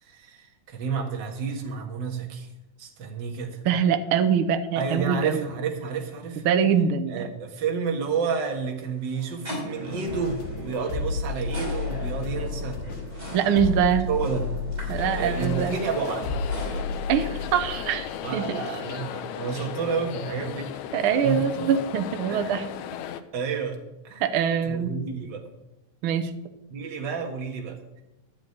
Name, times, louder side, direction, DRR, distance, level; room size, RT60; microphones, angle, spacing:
voice 1, 0.0-2.5 2.8-3.6 4.8-6.4 7.1-12.8 14.1-14.5 14.8-16.3 18.2-20.7 21.2-21.7 22.3-22.6 23.3-23.8 24.0-24.2 24.6-25.4 26.7-27.8, right 5 dB, 45° right, 3 dB, 1.9 m, -30 dB
voice 2, 3.6-5.4 6.4-7.3 13.3-14.1 14.9-15.8 17.1-18.6 20.9-22.7 24.2-24.9 26.0-26.3, right 7 dB, 70° right, 9 dB, 1.3 m, -23 dB
sound 1, 7.9-16.8, equal, 10° right, 5.2 m, -39 dB
sound 2, 10.1-19.3 19.6-19.7, left 4 dB, 60° left, 3.0 m, -33 dB
sound 3, 15.0-23.2, left 10 dB, 80° left, 2.0 m, -36 dB
11.5 x 6.4 x 9.5 m, 0.93 s
omnidirectional pair, 3.5 m